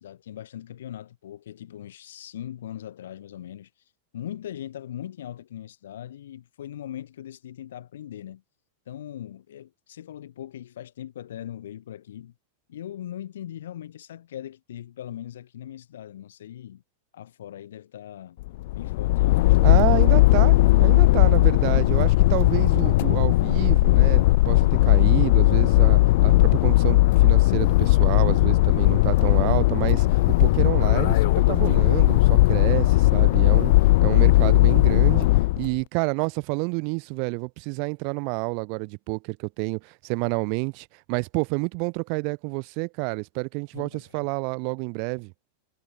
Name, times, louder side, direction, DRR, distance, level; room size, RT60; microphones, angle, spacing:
voice 1, 0.0-3.7 4.1-8.4 8.9-12.3 12.7-16.8 17.1-18.4 18.7-20.0 43.7-44.3, left 11 dB, 85° left, 3.9 m, -40 dB
sound 1, 18.4-35.7, left 19 dB, 55° left, 0.4 m, -18 dB
voice 2, 19.6-33.7 34.0-35.3 35.6-45.3, right 39 dB, 40° right, 1.6 m, -29 dB
supercardioid pair, 160°, 0 cm